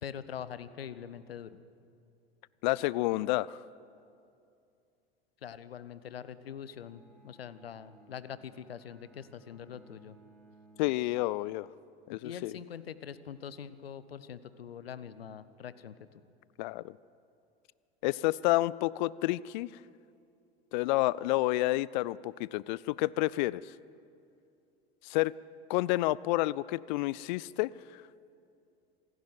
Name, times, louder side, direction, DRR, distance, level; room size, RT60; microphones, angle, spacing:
voice 1, 0.0-1.6 5.4-10.2 12.2-15.9, left 8 dB, 70° left, 15 dB, 1.0 m, -43 dB
voice 2, 2.6-3.6 10.8-11.7 12.1-12.5 16.6-16.9 18.0-19.7 20.7-23.7 25.0-25.3 25.7-28.0, left 18 dB, 50° left, 22 dB, 0.5 m, -29 dB
Bowed string instrument, 6.6-12.4, right 2 dB, 5° left, 3.3 m, -61 dB
26.5 x 11.5 x 9.3 m, 2.5 s
figure-of-eight pair, 80°, 30 cm